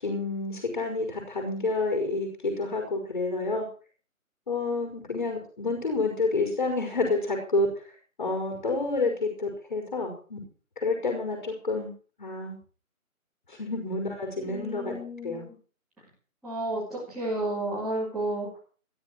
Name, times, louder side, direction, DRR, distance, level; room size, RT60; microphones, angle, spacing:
voice 1, 0.0-3.7 4.5-7.7 8.2-10.4 10.8-11.9 12.2-12.6 13.5-15.0 15.2-15.4, left 3 dB, 30° left, 3 dB, 5.3 m, -29 dB
voice 2, 14.5-15.4 16.4-18.6, right 1 dB, ahead, -14 dB, 2.2 m, -32 dB
14.5 x 13.0 x 6.0 m, 0.40 s
figure-of-eight pair, 170°, 43 cm